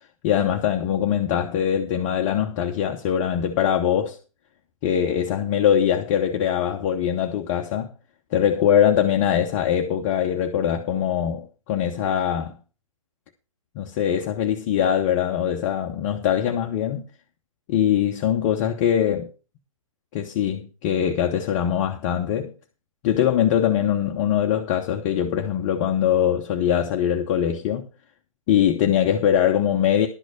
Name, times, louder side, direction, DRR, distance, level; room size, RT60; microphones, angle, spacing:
voice 1, 0.2-4.2 4.8-7.9 8.3-12.6 13.7-17.0 17.7-19.3 20.1-22.5 23.0-27.9 28.5-30.1, left 9 dB, 25° left, 0.9 m, -22 dB
11.5 x 6.3 x 6.2 m
figure-of-eight pair, 125°, 18 cm